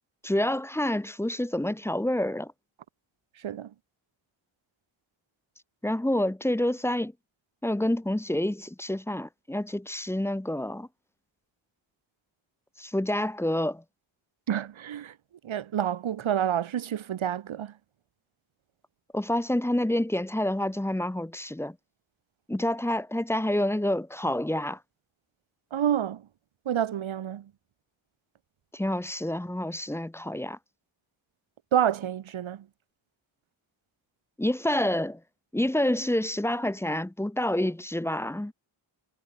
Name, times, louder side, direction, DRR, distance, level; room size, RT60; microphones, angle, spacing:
voice 1, 0.2-2.5 5.8-7.1 7.6-10.9 12.8-13.8 19.1-21.7 22.5-24.8 28.7-30.6 34.4-35.2 35.5-38.5, left 1 dB, 5° left, 0.8 m, -28 dB
voice 2, 14.5-15.1 15.4-17.7 25.7-26.2 26.7-27.5 31.7-32.7, right 10 dB, 80° right, 2.0 m, -28 dB
wide cardioid pair, 100°, 47 cm